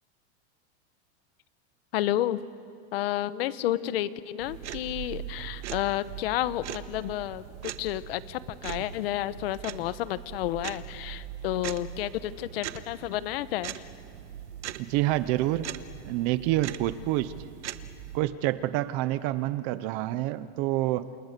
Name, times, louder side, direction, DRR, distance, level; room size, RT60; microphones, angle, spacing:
voice 1, 1.9-2.4 2.9-13.8, left 14 dB, 60° left, 15 dB, 1.0 m, -31 dB
sound 1, 4.4-18.2, right 12 dB, 90° right, 1.4 m, -41 dB
voice 2, 14.8-15.7 16.0-17.3 18.1-21.1, right 15 dB, 30° right, 15 dB, 0.5 m, -27 dB
29.0 x 28.0 x 6.7 m, 2.6 s
supercardioid pair, 175°, 33 cm